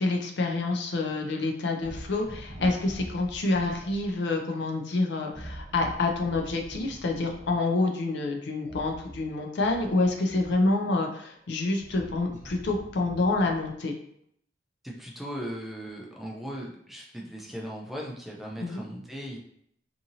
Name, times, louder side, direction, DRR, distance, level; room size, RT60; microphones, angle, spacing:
voice 1, 0.0-13.9 18.6-18.8, left 2 dB, 65° left, 3 dB, 0.4 m, -27 dB
sound 1, 1.8-4.1 5.3-7.6 8.6-10.9 11.5-13.8, right 1 dB, 40° right, 0.9 m, -44 dB
voice 2, 14.8-19.4, equal, ahead, -3 dB, 0.4 m, -38 dB
2.7 x 2.5 x 2.7 m, 0.69 s
head